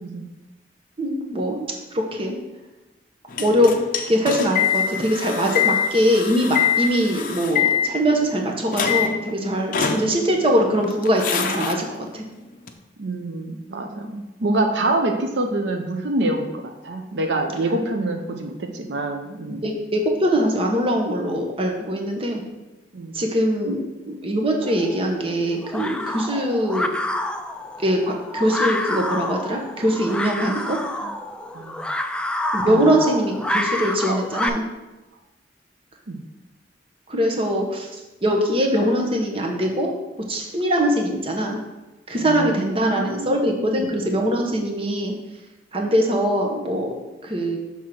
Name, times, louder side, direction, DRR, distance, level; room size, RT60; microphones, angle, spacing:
voice 1, 1.0-2.3 3.4-11.8 12.1-12.2 19.6-22.4 23.1-26.9 27.8-30.8 32.5-34.6 37.1-37.9 38.2-39.9 40.3-41.6 42.1-45.1 45.7-47.0 47.2-47.6, equal, 30° right, 1 dB, 0.9 m, -22 dB
sound 1, 3.3-8.4 8.7-9.3 9.7-10.5 10.8-11.7 12.7-12.8, left 8 dB, 50° left, 0.6 m, -24 dB
voice 2, 13.0-19.7 22.9-23.2 31.0-31.1 31.5-31.8 32.7-32.8 36.1-36.2 42.1-43.9, right 2 dB, 80° right, 3 dB, 0.7 m, -26 dB
sound 2, 24.6-34.5, left 1 dB, 5° left, 0.3 m, -28 dB
6.4 x 3.6 x 6.0 m, 1.1 s
head